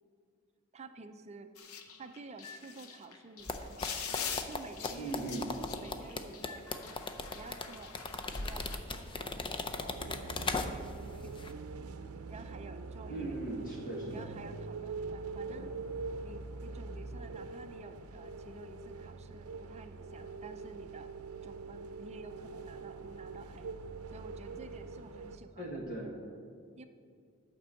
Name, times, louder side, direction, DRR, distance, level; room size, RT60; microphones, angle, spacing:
voice 1, 0.7-1.5 2.0-5.2 5.8-6.8 7.3-7.9 8.3-11.6 12.3-13.3 14.1-15.7 16.2-21.1 21.4-23.8 24.1-25.8 26.8-26.9, right 3 dB, 30° right, 8 dB, 0.5 m, -51 dB
sound 1, 1.6-8.8, left 7 dB, 85° left, 0.8 m, -44 dB
sound 2, 3.5-11.0 11.3-11.5, left 3 dB, 25° left, 0.6 m, -38 dB
voice 2, 5.0-5.5 13.1-14.3 15.5-15.7 25.6-26.1, right 2 dB, 40° left, -3 dB, 1.6 m, -39 dB
sound 3, 9.9-25.4, right 4 dB, 85° right, 0.6 m, -44 dB
11.5 x 5.2 x 7.6 m, 2.3 s
head